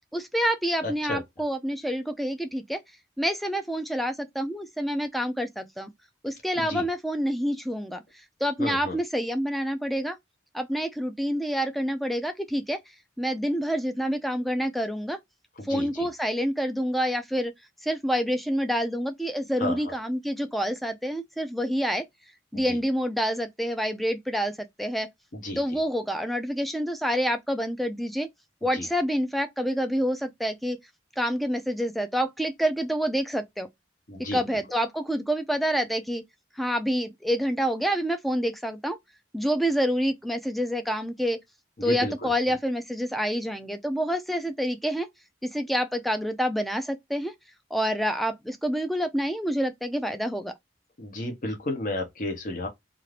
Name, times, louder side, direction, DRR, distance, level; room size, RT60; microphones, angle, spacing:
voice 1, 0.1-2.8 3.2-5.9 6.2-8.0 8.4-10.2 10.5-12.8 13.2-15.2 15.7-17.5 17.8-22.0 22.5-24.5 24.8-25.1 25.6-28.3 28.6-30.8 31.2-33.7 34.3-36.2 36.6-39.0 39.3-41.4 41.8-45.1 45.4-47.3 47.7-50.5, equal, ahead, 0.3 m, -27 dB
voice 2, 0.8-1.2 6.6-6.9 8.6-9.0 15.6-16.1 19.6-19.8 22.5-22.8 25.3-25.6 28.7-28.9 34.1-34.4 41.8-42.3 51.0-52.7, left 1 dB, 45° left, 0.8 m, -32 dB
2.6 x 2.4 x 3.2 m
head